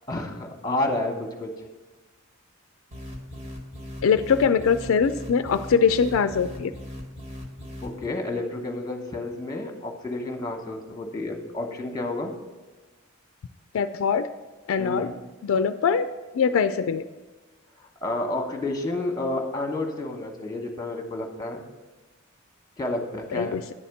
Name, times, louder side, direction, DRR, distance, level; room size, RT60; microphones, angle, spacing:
voice 1, 0.1-1.5 7.8-12.3 14.8-15.2 18.0-21.6 22.8-23.6, left 2 dB, 20° left, 3 dB, 1.1 m, -30 dB
sound 1, 2.9-8.1, left 1 dB, 30° right, 1.3 m, -39 dB
voice 2, 4.0-6.7 13.7-14.3 14.7-15.1 15.4-16.1 16.3-17.0 23.3-23.6, left 6 dB, 75° left, 10 dB, 0.4 m, -22 dB
10.0 x 4.3 x 7.0 m, 1.2 s
head